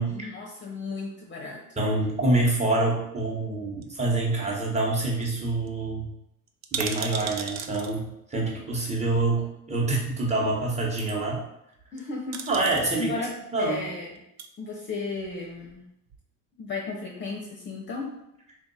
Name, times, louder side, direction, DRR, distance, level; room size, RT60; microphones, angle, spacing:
voice 1, 0.1-1.6 11.9-12.5 13.0-14.2 14.6-15.8 16.6-18.1, left 3 dB, 30° left, -2 dB, 0.7 m, -34 dB
voice 2, 1.8-6.1 6.7-11.4 12.5-13.1 13.5-13.8, right 2 dB, 15° right, -2 dB, 1.0 m, -26 dB
sound 1, 3.8-4.6 4.9-5.0 5.2-5.4 5.7-5.8 6.5-7.9 9.1-9.2 11.8-12.0 12.3-13.0 14.1-14.5 15.1-15.8 16.1-16.2, right 6 dB, 45° right, 0.5 m, -36 dB
3.8 x 2.5 x 4.0 m, 0.80 s
supercardioid pair, 105°, 40 cm